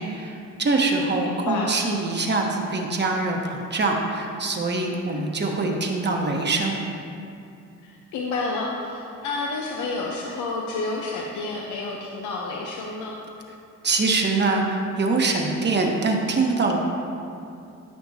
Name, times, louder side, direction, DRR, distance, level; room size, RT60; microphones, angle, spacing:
voice 1, 0.0-6.8 13.8-16.8, right 3 dB, 35° right, 1 dB, 1.2 m, -24 dB
voice 2, 1.2-1.7 5.1-5.3 7.8-13.2, left 3 dB, 80° left, -1 dB, 0.8 m, -30 dB
14.0 x 5.8 x 2.8 m, 2.5 s
cardioid pair, 90°, 30 cm